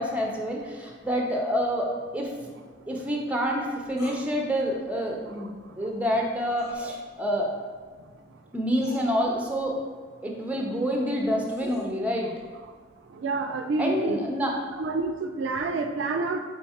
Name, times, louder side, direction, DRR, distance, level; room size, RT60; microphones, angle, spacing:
voice 1, 0.0-2.3 2.9-7.5 8.5-9.8 10.2-12.3 13.8-14.6, equal, 10° right, 0 dB, 0.5 m, -27 dB
sound 1, 4.0-4.3 6.6-6.8 8.2-8.3 8.8-9.1 11.1-11.9, equal, 60° left, 0.8 m, -43 dB
voice 2, 13.2-14.2 14.8-16.4, right 3 dB, 75° right, 6 dB, 0.4 m, -28 dB
4.4 x 3.8 x 2.8 m, 1.6 s
head